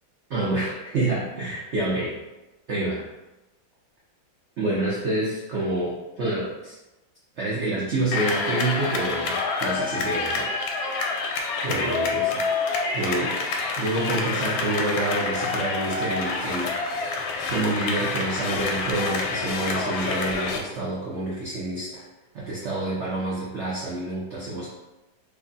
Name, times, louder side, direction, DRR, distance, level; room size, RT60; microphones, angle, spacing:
voice 1, 0.3-2.2 2.7-3.0 4.6-6.8 7.4-11.2 11.6-12.5 12.9-13.4 13.8-16.7 17.1-22.0 22.3-24.7, right 2 dB, 80° right, -6 dB, 0.6 m, -28 dB
sound 1, 8.1-20.6, left 4 dB, 85° left, 1.3 m, -27 dB
3.1 x 2.4 x 3.8 m, 1.0 s
omnidirectional pair, 2.1 m